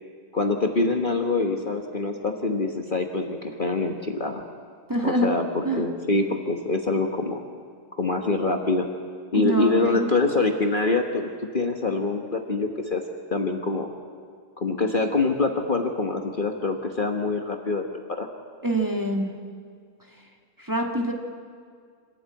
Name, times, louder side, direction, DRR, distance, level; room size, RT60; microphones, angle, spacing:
voice 1, 0.3-4.4 5.0-7.4 7.9-8.9 9.3-13.0 13.3-13.9 14.6-18.3, left 3 dB, 40° left, 3 dB, 1.3 m, -25 dB
voice 2, 4.9-5.3 5.6-5.8 9.3-10.1 18.6-19.3 20.6-21.1, right 1 dB, 15° right, 1 dB, 1.8 m, -25 dB
25.5 x 13.0 x 8.9 m, 2.2 s
omnidirectional pair, 1.4 m